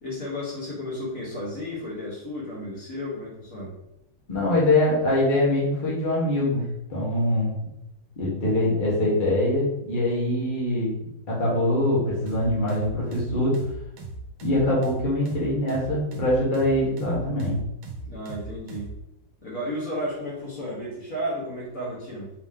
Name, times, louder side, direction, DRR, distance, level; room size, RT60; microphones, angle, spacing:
voice 1, 0.0-3.7 18.0-18.9 19.4-22.3, equal, 45° left, -6 dB, 1.5 m, -33 dB
voice 2, 4.3-6.6 6.9-7.7 8.2-10.9 11.3-13.6 14.4-17.6, left 1 dB, 25° left, -6 dB, 1.3 m, -23 dB
sound 1, 12.3-19.0, right 3 dB, 75° right, 1.6 m, -38 dB
4.7 x 3.0 x 3.6 m, 0.84 s
omnidirectional pair, 2.3 m